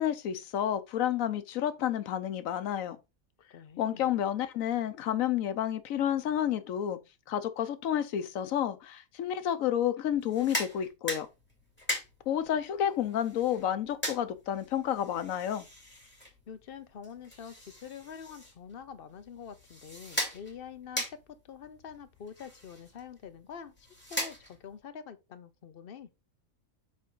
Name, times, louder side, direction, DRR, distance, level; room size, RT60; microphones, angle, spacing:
voice 1, 0.0-3.0 3.8-7.0 7.3-11.3 12.3-15.7, left 10 dB, 85° left, 1.1 m, -30 dB
voice 2, 3.4-4.1 16.5-26.1, left 7 dB, 50° left, 0.8 m, -46 dB
sound 1, 10.2-24.8, equal, 10° left, 2.5 m, -40 dB
7.6 x 3.7 x 3.8 m
omnidirectional pair, 1.4 m